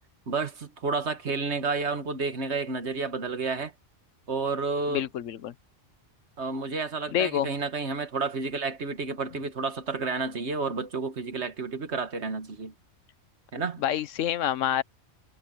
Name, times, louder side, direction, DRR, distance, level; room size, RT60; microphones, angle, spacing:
voice 1, 0.3-3.7 4.3-5.1 6.4-12.7 13.5-13.8, right 4 dB, 65° right, 1.8 m, -30 dB
voice 2, 4.9-5.5 7.1-7.5 13.8-14.8, left 10 dB, 85° left, 1.1 m, -27 dB
omnidirectional pair, 1.3 m